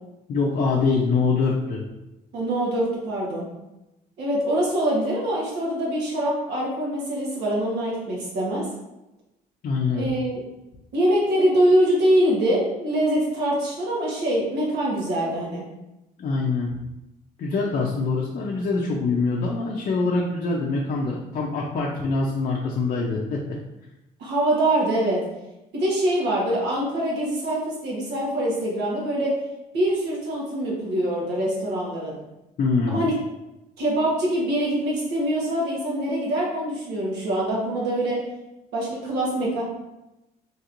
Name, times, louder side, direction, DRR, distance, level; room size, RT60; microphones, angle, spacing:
voice 1, 0.3-1.8 9.6-10.1 16.2-16.7 17.4-23.6 32.6-33.0, left 4 dB, 50° left, -2 dB, 0.5 m, -24 dB
voice 2, 2.3-3.4 4.2-8.7 9.9-10.4 10.9-15.6 24.2-25.2 25.7-29.3 29.7-32.1 32.9-33.1 33.8-38.2 38.7-39.6, right 1 dB, 80° right, -4 dB, 1.1 m, -24 dB
3.0 x 2.9 x 2.5 m, 0.95 s
cardioid pair, 110°, 17 cm